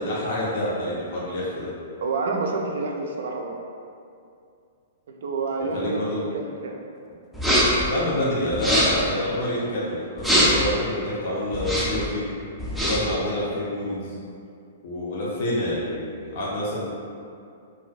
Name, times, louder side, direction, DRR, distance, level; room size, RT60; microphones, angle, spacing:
voice 1, 0.0-1.7 5.7-6.2 7.8-12.3 12.8-14.2 14.8-16.9, left 1 dB, 55° left, -7 dB, 0.5 m, -27 dB
voice 2, 2.0-3.6 5.1-6.8, right 3 dB, 70° right, 1 dB, 0.3 m, -28 dB
sound 1, 7.3-7.9 8.5-9.1 10.2-10.7 11.5-12.1 12.6-13.1, equal, ahead, 0.4 m, -22 dB
2.3 x 2.1 x 2.5 m, 2.4 s
hypercardioid pair, 130°, 0 cm